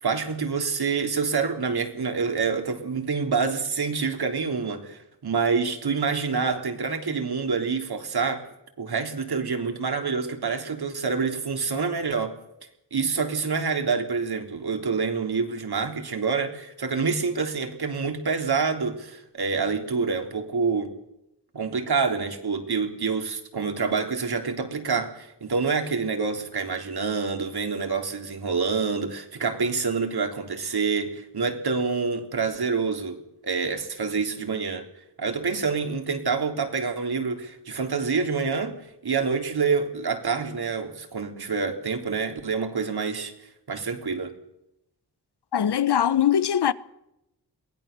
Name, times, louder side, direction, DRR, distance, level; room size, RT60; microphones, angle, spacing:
voice 1, 0.0-8.4 8.8-12.3 12.9-20.9 21.5-33.2 33.4-34.8 35.2-43.3 43.7-44.3, right 5 dB, 65° right, 3.7 m, -27 dB
voice 2, 45.5-46.7, left 9 dB, 75° left, 1.1 m, -21 dB
22.5 x 17.0 x 6.9 m
cardioid pair, 55°, 40 cm